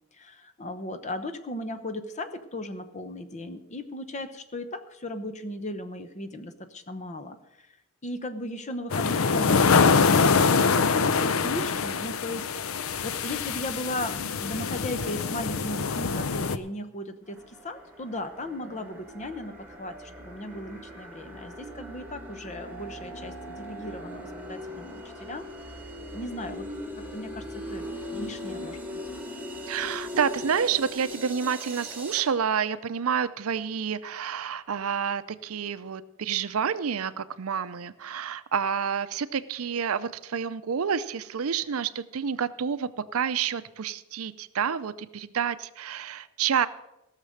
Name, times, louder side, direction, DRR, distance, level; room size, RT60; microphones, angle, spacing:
voice 1, 0.1-7.7 8.0-12.5 13.0-25.4 26.1-28.8, left 1 dB, 35° left, 10 dB, 0.9 m, -37 dB
sound 1, 8.9-16.6, left 5 dB, 75° left, 0.6 m, -24 dB
sound 2, 17.3-32.2, left 1 dB, 10° right, 1.9 m, -40 dB
voice 2, 29.7-46.7, right 7 dB, 80° right, 15 dB, 0.5 m, -29 dB
16.5 x 6.7 x 6.5 m, 0.93 s
head